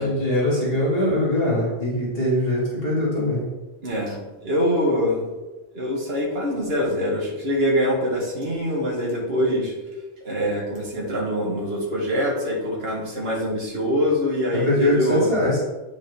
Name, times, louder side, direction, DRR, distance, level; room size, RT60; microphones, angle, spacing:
voice 1, 0.0-3.4 14.5-15.6, left 1 dB, 50° left, -6 dB, 2.4 m, -22 dB
voice 2, 3.8-5.3 5.7-9.7 10.2-15.3, equal, 55° right, -3 dB, 2.1 m, -24 dB
9.2 x 5.2 x 3.5 m, 1.1 s
omnidirectional pair, 1.3 m